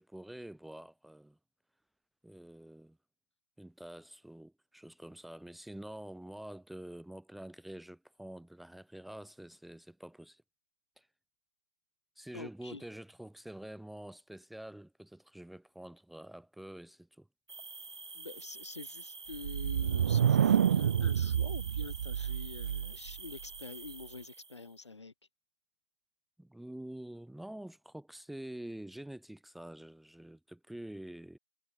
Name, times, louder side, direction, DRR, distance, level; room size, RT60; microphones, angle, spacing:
voice 1, 0.0-1.4 2.2-3.0 3.6-10.4 11.0-11.1 12.1-17.3 26.4-31.4, right 1 dB, ahead, 1.7 m, -47 dB
voice 2, 12.3-12.8 18.1-25.1, left 3 dB, 70° left, 4.4 m, -47 dB
sound 1, 17.5-24.7, right 4 dB, 65° right, 3.4 m, -48 dB
sound 2, 19.3-23.1, right 9 dB, 30° right, 0.9 m, -28 dB
figure-of-eight pair, 160°, 15 cm